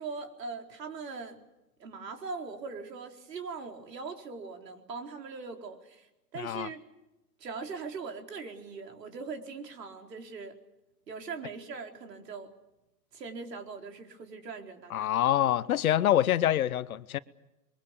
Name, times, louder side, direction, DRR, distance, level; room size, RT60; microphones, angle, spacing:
voice 1, 0.0-1.4 1.8-6.9 7.4-10.5 11.1-12.5 13.1-15.1, right 4 dB, 75° right, 4.4 m, -41 dB
voice 2, 6.4-6.7 14.9-17.2, left 12 dB, 55° left, 1.1 m, -26 dB
28.5 x 23.0 x 7.0 m
hypercardioid pair, 135°, 50 cm